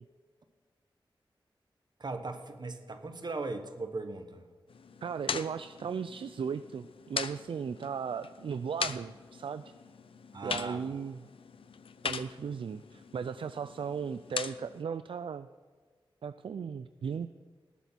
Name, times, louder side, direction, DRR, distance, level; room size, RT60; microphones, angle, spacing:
voice 1, 2.0-4.5 10.3-10.8, right 3 dB, 55° right, 8 dB, 1.2 m, -38 dB
sound 1, 4.7-14.8, left 6 dB, 90° left, 0.6 m, -41 dB
voice 2, 5.0-9.7 10.4-11.2 12.0-15.5 16.2-17.3, right 6 dB, 75° right, 13 dB, 0.4 m, -36 dB
18.5 x 8.3 x 4.5 m, 1.5 s
wide cardioid pair, 80°, 9 cm